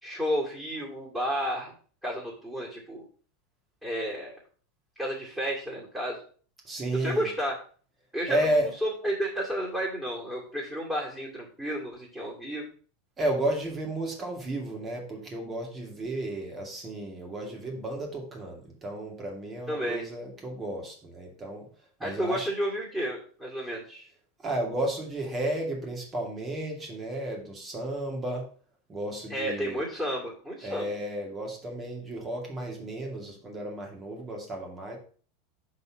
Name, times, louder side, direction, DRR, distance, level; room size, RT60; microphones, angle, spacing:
voice 1, 0.0-1.7 2.0-3.0 3.8-4.4 5.0-6.2 6.9-7.5 8.1-12.6 19.7-20.0 22.0-24.1 29.3-30.9, equal, 5° right, -5 dB, 2.6 m, -32 dB
voice 2, 6.6-7.3 8.3-8.7 13.2-21.7 22.0-22.5 24.4-28.5 28.9-29.8 30.6-35.0, right 1 dB, 25° right, 0 dB, 2.2 m, -32 dB
5.3 x 4.1 x 5.9 m, 0.42 s
hypercardioid pair, 90°, 0 cm